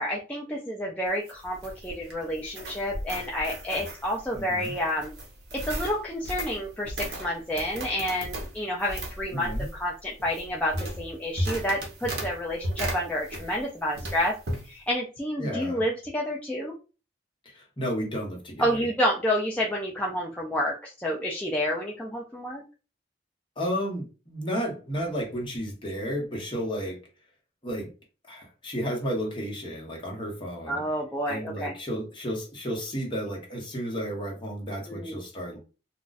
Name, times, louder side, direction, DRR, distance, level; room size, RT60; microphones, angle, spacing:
voice 1, 0.0-5.1 5.5-14.3 14.7-16.8 18.6-22.6 30.7-31.7 34.9-35.2, equal, 10° left, -3 dB, 0.4 m, -29 dB
sound 1, 1.1-13.7 14.0-14.6, right 1 dB, 60° right, 0.8 m, -35 dB
voice 2, 4.3-4.7 9.3-9.7 15.4-15.8 17.4-18.9 23.6-27.0 27.6-27.9 28.3-30.8 31.3-35.6, equal, 25° left, -1 dB, 1.0 m, -32 dB
2.4 x 2.3 x 3.9 m, 0.32 s
head